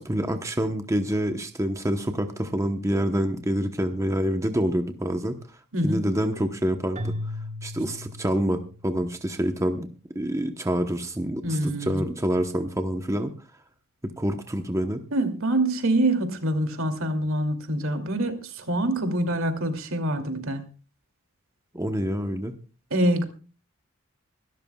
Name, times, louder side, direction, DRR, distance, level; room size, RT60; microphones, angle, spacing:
voice 1, 0.0-5.4 5.8-7.1 7.6-9.9 10.1-11.6 11.9-13.3 14.0-15.0 21.7-22.5, equal, 15° right, 6 dB, 0.9 m, -27 dB
voice 2, 5.7-6.1 11.4-12.0 15.1-20.6 22.9-23.2, right 1 dB, 75° right, 6 dB, 2.7 m, -25 dB
Keyboard (musical), 6.9-9.2, left 1 dB, 35° right, 1.2 m, -36 dB
25.0 x 12.5 x 2.3 m, 0.36 s
head